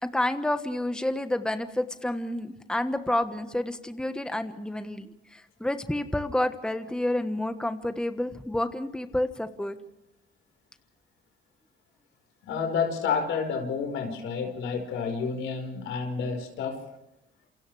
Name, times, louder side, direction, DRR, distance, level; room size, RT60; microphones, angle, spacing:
voice 1, 0.0-9.8, left 1 dB, 5° left, 8 dB, 1.3 m, -29 dB
voice 2, 12.4-16.8, left 5 dB, 85° left, 4 dB, 4.8 m, -30 dB
28.0 x 28.0 x 3.4 m, 0.89 s
cardioid pair, 90°, 20 cm